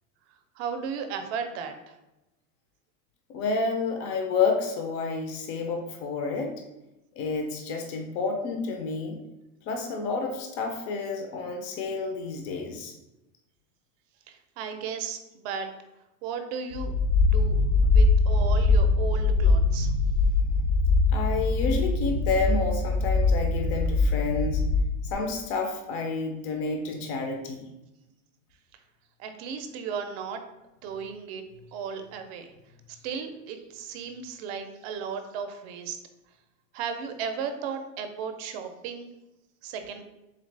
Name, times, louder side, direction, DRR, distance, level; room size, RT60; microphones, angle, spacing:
voice 1, 0.6-2.0 14.3-15.7 16.2-17.6 17.8-19.9 29.2-30.4 30.8-31.4 31.7-32.5 32.9-36.0 36.7-39.1 39.6-40.0, right 6 dB, 50° right, 7 dB, 0.5 m, -35 dB
voice 2, 3.3-6.6 7.2-9.2 9.7-12.9 21.1-24.6 25.0-27.7, left 4 dB, 40° left, 3 dB, 0.5 m, -29 dB
sound 1, 16.7-25.1, left 3 dB, 80° left, 1.0 m, -22 dB
3.9 x 3.2 x 3.2 m, 0.96 s
supercardioid pair, 165°, 41 cm